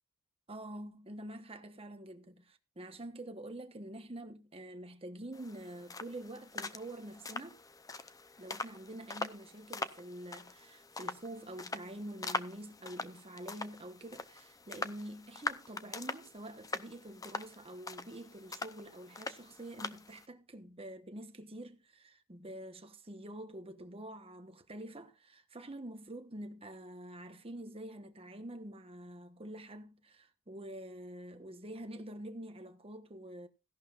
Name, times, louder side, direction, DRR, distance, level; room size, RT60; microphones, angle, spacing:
voice 1, 0.5-7.6 8.4-33.5, right 1 dB, 25° right, 1.1 m, -47 dB
sound 1, 5.3-20.3, left 3 dB, 15° left, 0.6 m, -43 dB
16.5 x 11.5 x 2.5 m
head